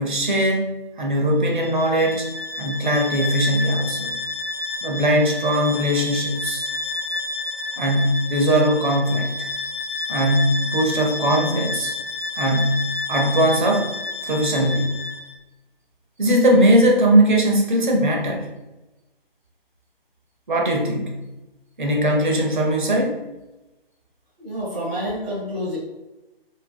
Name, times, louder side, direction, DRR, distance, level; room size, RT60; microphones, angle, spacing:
voice 1, 0.0-2.3 2.5-4.1 4.8-6.7 7.8-9.5 10.1-11.9 12.4-13.9 14.2-15.0 16.2-18.5 20.5-21.2 21.8-23.2, right 1 dB, 50° right, 0 dB, 0.8 m, -20 dB
Bowed string instrument, 1.5-15.4, left 3 dB, 65° left, 0.5 m, -30 dB
voice 2, 24.4-25.8, equal, 5° right, -19 dB, 0.5 m, -28 dB
3.3 x 3.2 x 2.3 m, 1.0 s
figure-of-eight pair, 145°, 30 cm